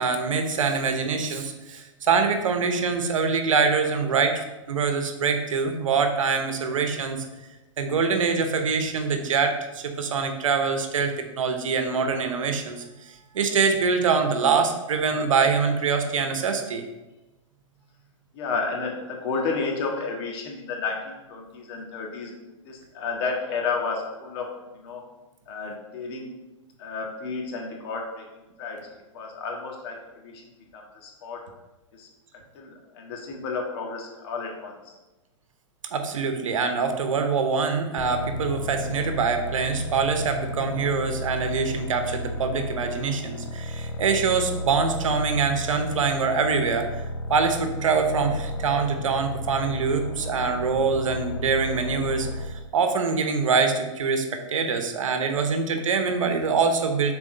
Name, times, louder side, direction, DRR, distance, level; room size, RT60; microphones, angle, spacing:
voice 1, 0.0-7.2 7.8-12.8 13.3-16.8 35.9-46.9 47.3-57.1, right 5 dB, 85° right, 6 dB, 0.9 m, -24 dB
voice 2, 18.3-22.3 22.6-24.5 24.7-25.0 25.5-26.4 26.8-28.2 28.6-30.4 30.7-31.4 31.9-32.1 32.5-34.9, left 4 dB, 55° left, 0 dB, 1.6 m, -32 dB
sound 1, 38.0-52.7, left 1 dB, 85° left, 0.6 m, -33 dB
6.3 x 4.1 x 3.9 m, 1.1 s
hypercardioid pair, 125°, 16 cm